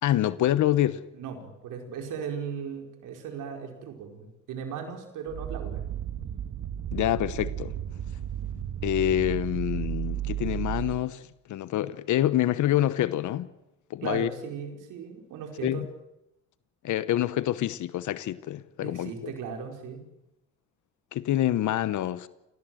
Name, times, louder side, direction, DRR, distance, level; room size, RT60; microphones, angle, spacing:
voice 1, 0.0-1.0 6.9-7.7 8.8-13.5 13.9-14.3 15.6-15.9 16.8-19.3 21.1-22.3, left 13 dB, 75° left, 1.1 m, -26 dB
voice 2, 1.1-5.8 14.0-15.9 18.8-20.0, right 6 dB, 90° right, 5.0 m, -37 dB
sound 1, 5.3-11.0, right 11 dB, 75° right, 2.1 m, -33 dB
26.5 x 18.5 x 7.8 m
cardioid pair, 90°, 30 cm